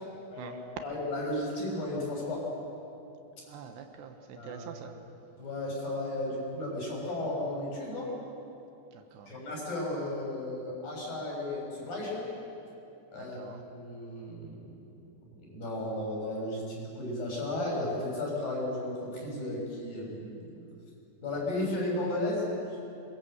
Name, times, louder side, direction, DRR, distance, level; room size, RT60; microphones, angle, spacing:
voice 1, 0.0-2.5 4.4-4.7 5.3-8.1 9.3-12.3 13.1-14.7 15.3-20.6 21.2-22.5, left 1 dB, 50° left, -2 dB, 8.5 m, -34 dB
voice 2, 3.5-4.9 8.9-9.3 13.2-13.6, right 7 dB, 75° right, 6 dB, 3.4 m, -45 dB
26.5 x 23.0 x 8.1 m, 2.7 s
omnidirectional pair, 5.0 m